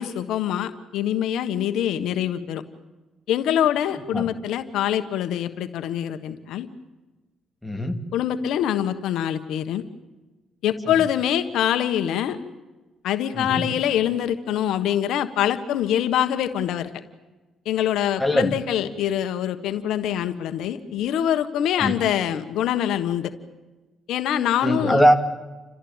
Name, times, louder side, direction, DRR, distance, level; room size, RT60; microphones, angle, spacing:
voice 1, 0.0-2.6 3.3-6.7 8.1-9.8 10.6-12.4 13.0-16.9 17.6-23.3 24.1-25.0, left 10 dB, 85° left, 9 dB, 1.4 m, -24 dB
voice 2, 7.6-8.0 13.3-13.7 18.2-18.5 21.8-21.9 24.6-25.1, equal, 5° left, 5 dB, 2.6 m, -20 dB
30.0 x 14.5 x 9.1 m, 1.2 s
cardioid pair, 90°, 0 cm